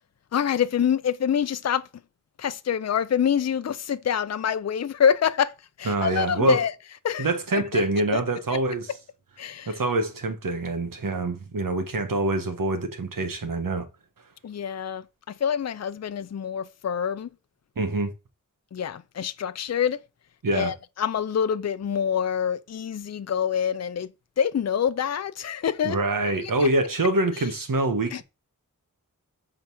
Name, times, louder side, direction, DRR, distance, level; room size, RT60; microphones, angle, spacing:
voice 1, 0.3-1.9 2.4-5.5 5.8-6.7 7.0-7.3 7.5-7.8 8.1-8.2 8.5-8.6 9.4-9.8 14.4-17.3 18.7-20.0 20.5-24.1 24.4-26.0 28.1-28.2, left 8 dB, 55° left, 0.5 m, -26 dB
voice 2, 5.9-6.6 7.2-8.9 9.7-13.8 17.8-18.1 20.4-20.7 25.8-28.2, right 2 dB, 90° right, 1.3 m, -25 dB
6.9 x 3.9 x 6.2 m
wide cardioid pair, 70°, 32 cm